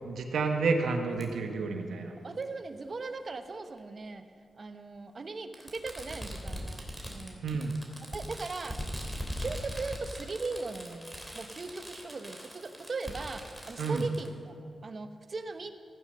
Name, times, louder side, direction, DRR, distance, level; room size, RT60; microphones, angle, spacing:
voice 1, 0.0-2.2 7.4-7.8 13.8-14.0, right 4 dB, 85° right, 4 dB, 1.4 m, -30 dB
Fireworks, 1.2-1.3 2.4-2.5 3.8-3.9 5.5-14.3, equal, ahead, 3.0 m, -41 dB
voice 2, 2.2-4.2 4.6-6.8 7.1-7.4 8.1-8.8 9.2-15.7, right 3 dB, 50° right, 8 dB, 1.0 m, -39 dB
15.5 x 9.3 x 6.6 m, 2.3 s
cardioid pair, 60°, 0 cm